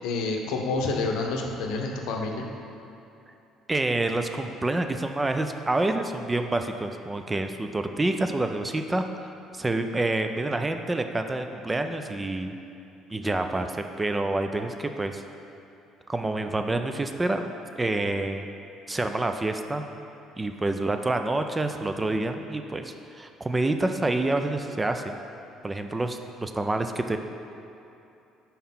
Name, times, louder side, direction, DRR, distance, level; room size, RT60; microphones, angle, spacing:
voice 1, 0.0-2.5, left 3 dB, 65° left, 1 dB, 0.7 m, -28 dB
voice 2, 3.7-12.6 13.1-15.2 16.1-18.5 18.9-19.9 20.4-25.2 25.6-27.2, right 2 dB, 20° right, 6 dB, 0.4 m, -28 dB
5.5 x 4.3 x 5.4 m, 2.8 s
hypercardioid pair, 55°, 0 cm